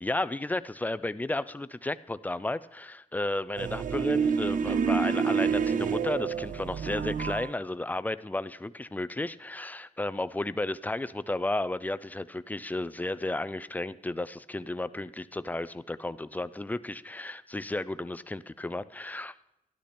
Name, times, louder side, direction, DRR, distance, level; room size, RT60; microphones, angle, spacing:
voice 1, 0.0-19.3, left 2 dB, 10° left, 15 dB, 0.4 m, -33 dB
sound 1, 3.6-7.5, right 6 dB, 80° right, 0.6 m, -28 dB
13.5 x 12.0 x 4.3 m, 0.87 s
wide cardioid pair, 135°, 13 cm